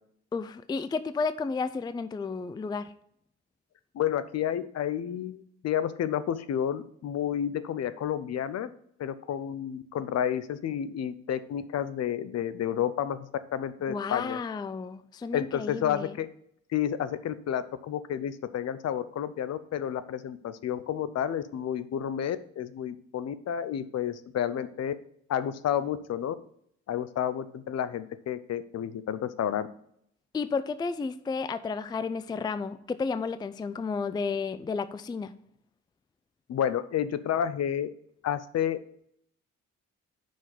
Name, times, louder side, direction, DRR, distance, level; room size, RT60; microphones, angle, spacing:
voice 1, 0.3-2.9 13.9-16.1 30.3-35.3, left 4 dB, 15° left, 13 dB, 0.4 m, -32 dB
voice 2, 3.9-8.7 9.0-14.4 15.3-16.3 16.7-24.9 25.3-26.3 26.9-29.7 36.5-37.9 38.2-38.8, left 9 dB, 60° left, 14 dB, 0.7 m, -30 dB
5.7 x 5.1 x 6.7 m, 0.69 s
cardioid pair, 90°, 30 cm